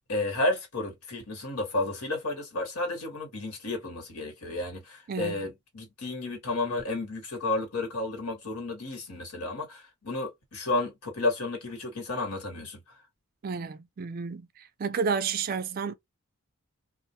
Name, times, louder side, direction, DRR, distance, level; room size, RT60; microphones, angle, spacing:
voice 1, 0.1-12.8, left 2 dB, 85° left, 1.4 m, -32 dB
voice 2, 13.4-16.0, right 5 dB, 40° right, 0.3 m, -31 dB
2.4 x 2.2 x 2.7 m
head